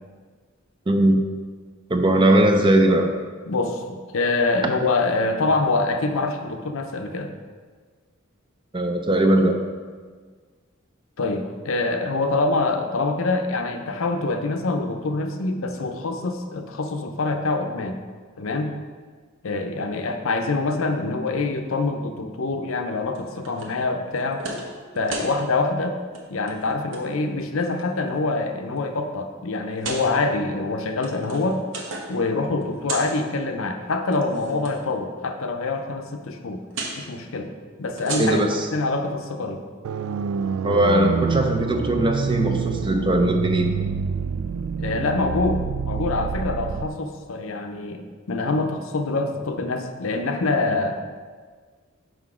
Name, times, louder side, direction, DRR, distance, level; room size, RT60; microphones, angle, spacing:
voice 1, 0.9-1.2 1.9-3.1 8.7-9.6 38.2-38.7 40.6-43.7, right 1 dB, 25° right, 4 dB, 0.6 m, -19 dB
voice 2, 3.5-7.4 11.2-18.0 18.4-18.7 19.4-24.4 25.0-26.0 26.3-31.6 32.1-36.6 37.0-37.5 37.8-38.4 38.7-39.6 44.8-51.0, left 3 dB, 70° left, 5 dB, 0.6 m, -25 dB
sound 1, 23.1-23.7 24.1-24.7 24.9-25.3 26.0-26.2 26.5-27.0 27.7-28.2 28.8-28.9 29.7-30.0 30.8-32.2 32.5-33.2 34.0-34.7 36.7-37.0 37.8-38.6, right 2 dB, 65° right, 1.1 m, -34 dB
sound 2, 39.8-46.9, right 6 dB, 80° right, 0.3 m, -27 dB
6.0 x 5.0 x 4.9 m, 1.5 s
head